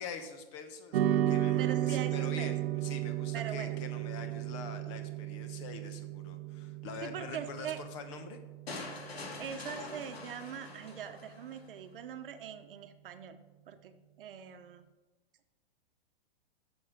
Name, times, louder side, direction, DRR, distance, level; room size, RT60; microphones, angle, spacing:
voice 1, 0.0-8.4, left 5 dB, 30° left, 8 dB, 1.0 m, -45 dB
sound 1, 0.9-9.5, right 12 dB, 80° right, 0.5 m, -34 dB
voice 2, 1.6-2.5 3.3-3.8 7.0-7.8 9.0-13.4 13.7-13.9 14.2-14.8, right 8 dB, 60° right, 8 dB, 0.9 m, -42 dB
sound 2, 8.7-11.7, left 3 dB, 85° left, 2.0 m, -44 dB
8.5 x 6.3 x 5.0 m, 1.2 s
hypercardioid pair, 160°, 30 cm